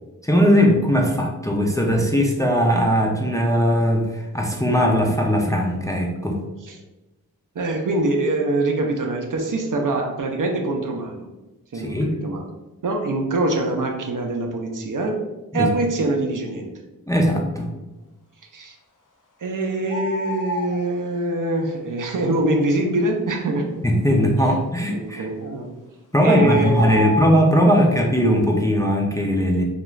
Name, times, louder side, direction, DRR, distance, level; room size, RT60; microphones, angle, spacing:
voice 1, 0.2-6.4 11.7-12.1 15.5-15.7 17.1-17.7 23.8-25.3 26.1-29.6, equal, 10° left, 0 dB, 0.4 m, -19 dB
voice 2, 7.5-11.3 11.7-12.4 12.8-15.2 15.5-16.7 18.5-18.8 19.4-23.7 24.4-24.5 24.9-25.7 26.2-27.2, right 2 dB, 55° right, 2 dB, 0.5 m, -24 dB
sound 1, 19.9-20.8 25.4-25.6 26.2-27.5, left 1 dB, 55° left, 0.6 m, -28 dB
2.4 x 2.3 x 3.0 m, 1.0 s
cardioid pair, 45°, 37 cm